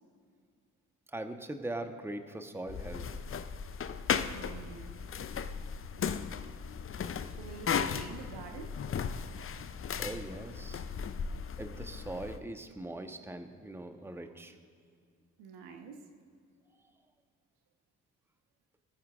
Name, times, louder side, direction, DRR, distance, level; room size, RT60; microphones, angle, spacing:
voice 1, 1.1-3.1 10.0-10.8 11.6-14.6, right 1 dB, 5° right, 7 dB, 1.2 m, -41 dB
sound 1, 2.7-12.4, left 7 dB, 30° left, 0.7 m, -36 dB
voice 2, 4.3-5.0 7.4-8.7 11.0-11.1 15.4-16.0, right 6 dB, 65° right, 4 dB, 1.3 m, -47 dB
22.5 x 14.5 x 2.6 m, 2.1 s
figure-of-eight pair, 40°, 41 cm